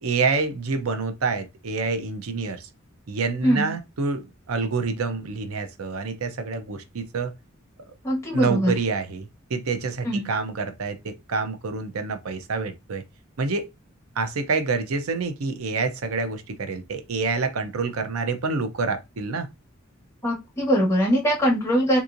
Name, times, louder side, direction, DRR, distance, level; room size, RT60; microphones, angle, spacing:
voice 1, 0.0-2.7 3.1-7.3 8.3-13.0 13.4-13.7 14.2-19.5, right 4 dB, 85° right, 0.6 m, -27 dB
voice 2, 8.0-8.7 10.0-10.3 20.2-22.0, equal, 15° left, 1.3 m, -22 dB
3.6 x 2.9 x 2.5 m
head